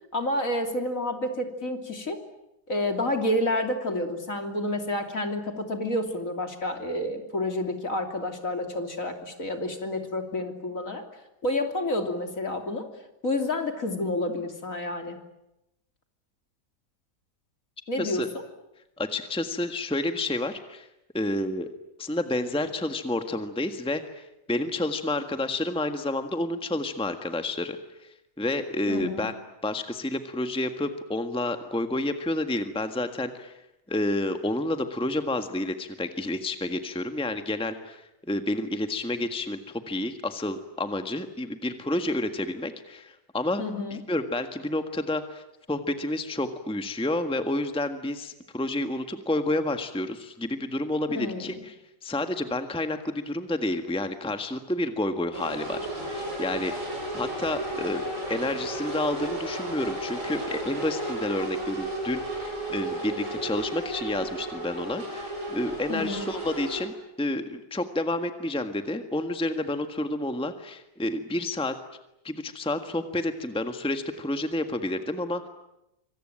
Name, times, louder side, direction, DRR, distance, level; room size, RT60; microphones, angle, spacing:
voice 1, 0.1-2.2 2.7-11.0 11.4-12.9 13.2-15.2 17.9-18.4 28.9-29.3 43.6-44.0 51.1-51.6 65.9-66.2, left 1 dB, 55° left, 5 dB, 3.4 m, -29 dB
voice 2, 19.0-20.9 21.1-21.7 22.0-28.1 28.4-29.3 29.6-33.6 33.9-43.6 44.1-45.4 45.7-51.7 52.0-56.7 57.1-58.0 58.3-71.7 72.2-75.5, left 1 dB, 5° left, 7 dB, 1.5 m, -30 dB
sound 1, 55.3-66.9, right 1 dB, 50° right, 7.4 m, -33 dB
25.5 x 25.5 x 9.0 m, 0.88 s
omnidirectional pair, 1.8 m